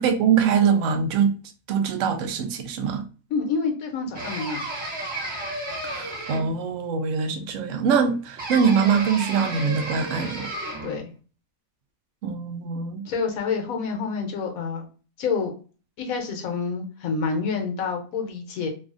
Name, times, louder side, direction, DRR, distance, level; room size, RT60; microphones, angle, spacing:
voice 1, 0.0-1.3 1.7-3.0 5.8-10.5 12.2-13.0, right 6 dB, 70° right, 0.9 m, -23 dB
voice 2, 3.3-4.7 10.8-11.1 13.0-14.9 15.2-15.5 16.0-18.7, left 5 dB, 75° left, 1.2 m, -28 dB
sound 1, 4.1-6.7 8.4-11.0, right 1 dB, 35° right, 1.6 m, -33 dB
3.2 x 2.4 x 2.4 m
omnidirectional pair, 1.5 m